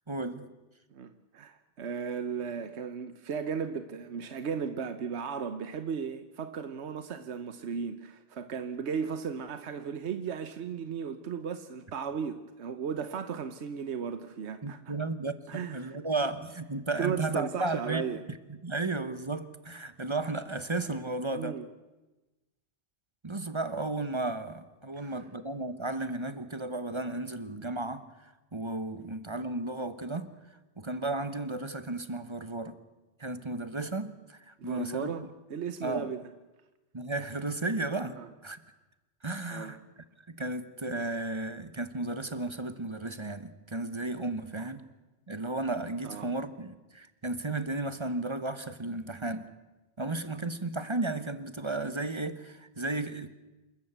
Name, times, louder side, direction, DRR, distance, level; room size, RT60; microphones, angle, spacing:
voice 1, 0.1-0.5 14.6-18.1 18.6-21.6 23.2-30.3 30.8-32.8 33.2-35.1 35.8-36.1 36.9-38.6 39.2-39.8 40.3-44.8 45.3-49.5 50.0-53.3, right 2 dB, 25° right, 12 dB, 1.0 m, -34 dB
voice 2, 0.9-14.9 15.5-16.0 17.0-18.2 21.3-21.7 25.0-25.2 34.6-35.2 35.5-36.2 38.2-38.3 39.5-39.8 44.6-44.7 46.0-46.4, right 6 dB, 80° right, 9 dB, 1.2 m, -36 dB
28.0 x 13.5 x 8.1 m, 1.1 s
omnidirectional pair, 1.1 m